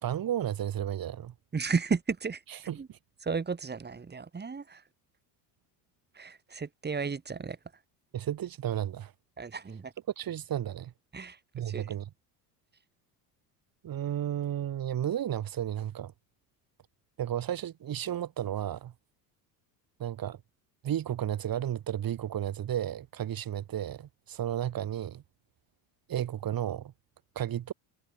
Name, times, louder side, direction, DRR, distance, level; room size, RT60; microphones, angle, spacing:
voice 1, 0.0-1.3 2.5-3.0 8.1-9.1 10.2-10.9 11.5-12.1 13.8-16.1 17.2-18.9 20.0-20.4 20.8-25.2 26.1-26.9 27.4-27.7, right 11 dB, 45° right, 3.9 m, -33 dB
voice 2, 1.5-2.4 2.8-2.9 3.2-4.8 6.2-7.6 9.4-9.9 11.1-11.4 11.7-11.9, right 5 dB, 20° right, 2.3 m, -33 dB
supercardioid pair, 95°, 47 cm